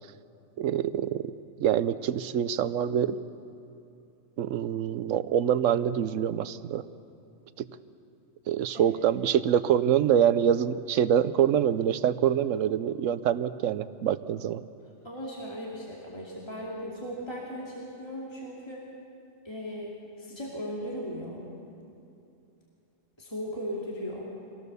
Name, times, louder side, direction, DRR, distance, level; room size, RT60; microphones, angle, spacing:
voice 1, 0.6-1.3 1.6-3.2 4.4-6.8 7.6-7.7 8.5-14.6, right 9 dB, 80° right, 14 dB, 1.0 m, -25 dB
voice 2, 15.0-18.8 19.4-21.4 23.2-24.3, equal, 20° left, -5 dB, 2.6 m, -37 dB
24.0 x 17.5 x 6.8 m, 2.6 s
omnidirectional pair, 1.3 m